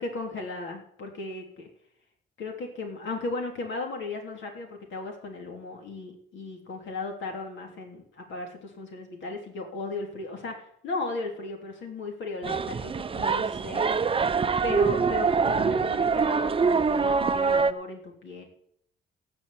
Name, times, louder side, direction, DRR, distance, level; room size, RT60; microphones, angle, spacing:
voice 1, 0.0-1.7 2.4-13.9 14.6-18.4, left 3 dB, 70° left, 2 dB, 3.3 m, -36 dB
sound 1, 12.4-17.7, right 5 dB, 30° right, 0.6 m, -24 dB
15.5 x 5.5 x 8.5 m, 0.71 s
cardioid pair, 90°, 20 cm